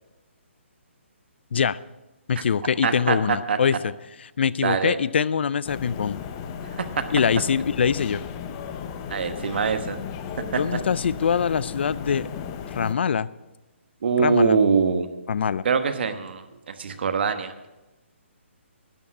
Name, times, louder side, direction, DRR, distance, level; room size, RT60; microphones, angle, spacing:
voice 1, 2.3-3.9 4.4-6.2 7.1-8.2 10.6-12.3 12.7-13.3 14.2-14.6 15.3-15.6, left 7 dB, 55° left, 19 dB, 0.4 m, -23 dB
voice 2, 2.8-3.6 4.6-5.0 6.8-7.0 9.1-10.0 10.5-10.6 14.0-15.1 15.6-17.7, right 5 dB, 55° right, 8 dB, 1.2 m, -23 dB
sound 1, 5.6-12.9, left 7 dB, 20° left, 0.7 m, -35 dB
12.0 x 9.9 x 6.0 m, 1.0 s
hypercardioid pair, 165°, 7 cm